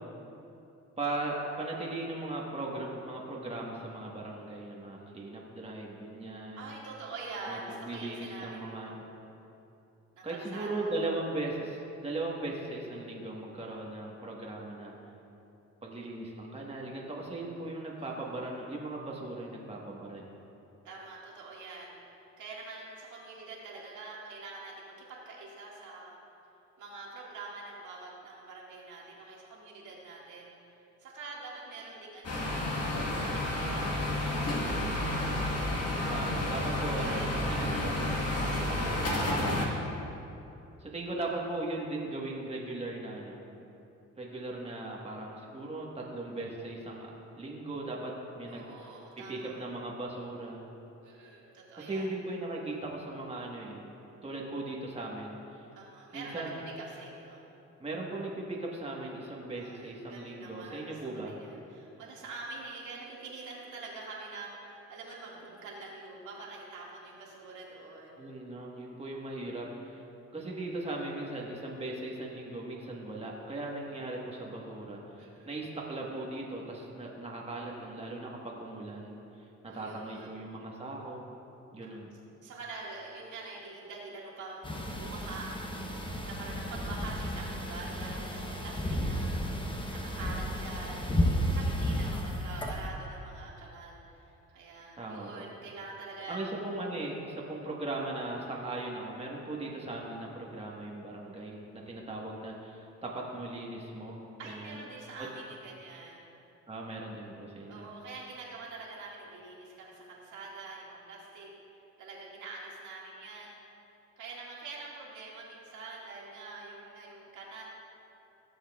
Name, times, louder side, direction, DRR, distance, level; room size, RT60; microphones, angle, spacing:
voice 1, 1.0-6.7 7.5-9.0 10.2-15.0 15.8-20.3 36.1-38.0 39.1-39.8 40.8-43.4 44.2-48.7 49.2-50.6 51.8-53.8 54.2-55.6 56.1-56.6 57.8-61.3 68.2-70.0 70.3-81.3 81.7-82.1 95.0-95.4 96.3-104.8 105.2-105.3 106.7-107.9, right 2 dB, 20° right, -2 dB, 1.4 m, -38 dB
voice 2, 6.6-9.0 10.1-11.1 18.0-18.1 20.8-21.9 22.4-26.2 26.8-30.5 31.0-32.6 33.2-35.4 36.2-38.1 38.5-39.9 48.5-49.6 51.0-52.1 55.8-57.4 59.6-68.2 71.7-71.8 75.2-75.5 79.7-80.3 82.4-85.9 86.2-89.4 89.9-96.4 104.4-106.3 107.7-111.5 112.0-113.6 114.2-117.6, right 3 dB, 75° right, -4 dB, 2.1 m, -45 dB
sound 1, 32.2-39.7, left 1 dB, 55° left, 1.6 m, -31 dB
sound 2, 84.6-92.9, equal, 15° left, 0.9 m, -33 dB
15.5 x 7.2 x 2.4 m, 2.8 s
cardioid pair, 90°, 30 cm